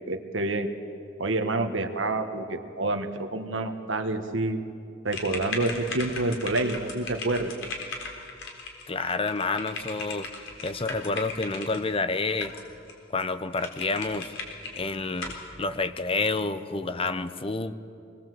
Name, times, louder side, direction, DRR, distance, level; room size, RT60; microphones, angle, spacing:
voice 1, 0.1-0.7 1.2-4.6 5.0-7.5, right 2 dB, 75° right, 7 dB, 1.5 m, -28 dB
sound 1, 5.1-11.8 12.4-12.9 13.2-13.3 13.6-14.8 15.2-15.4, left 3 dB, 85° left, 4.0 m, -37 dB
voice 2, 8.9-10.3 10.6-12.5 13.1-14.3 14.7-17.7, left 3 dB, 30° left, 12 dB, 0.7 m, -29 dB
25.5 x 20.0 x 7.8 m, 2.6 s
head